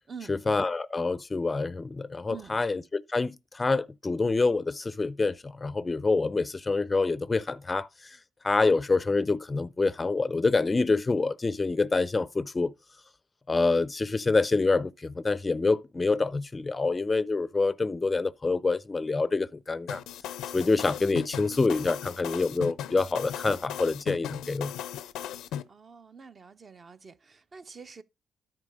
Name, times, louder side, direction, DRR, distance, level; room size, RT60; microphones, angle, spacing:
voice 1, 0.3-8.2 8.4-12.7 13.5-20.0 20.5-24.7, left 3 dB, 25° left, 0.4 m, -26 dB
sound 1, 19.9-25.6, left 10 dB, 85° left, 0.5 m, -37 dB
voice 2, 25.7-28.0, right 6 dB, 40° right, 0.6 m, -46 dB
9.8 x 4.5 x 4.9 m
cardioid pair, 90°, 0 cm